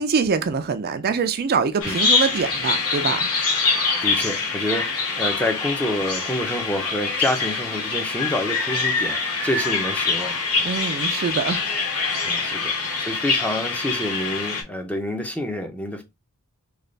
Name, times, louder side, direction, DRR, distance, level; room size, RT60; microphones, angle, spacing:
voice 1, 0.0-3.3 10.6-11.6, right 5 dB, 45° right, 0.4 m, -24 dB
Bird vocalization bird call bird song, 1.8-14.6, left 4 dB, 80° left, 1.1 m, -24 dB
voice 2, 4.0-10.7 12.2-16.0, left 1 dB, 5° left, 0.5 m, -28 dB
3.3 x 2.3 x 3.8 m
head